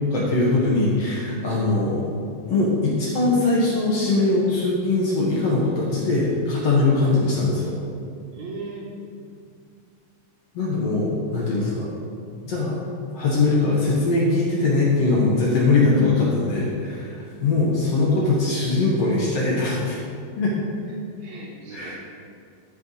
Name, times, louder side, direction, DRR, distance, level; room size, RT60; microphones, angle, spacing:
voice 1, 0.1-2.0 2.5-7.7 10.6-11.9 12.5-12.8 13.1-20.0 20.4-20.5 21.7-21.9, left 3 dB, 55° left, -5 dB, 1.9 m, -21 dB
voice 2, 8.3-9.1 17.2-17.3 21.2-21.9, right 2 dB, 70° right, -2 dB, 2.0 m, -37 dB
12.5 x 4.5 x 5.6 m, 2.3 s
omnidirectional pair, 4.0 m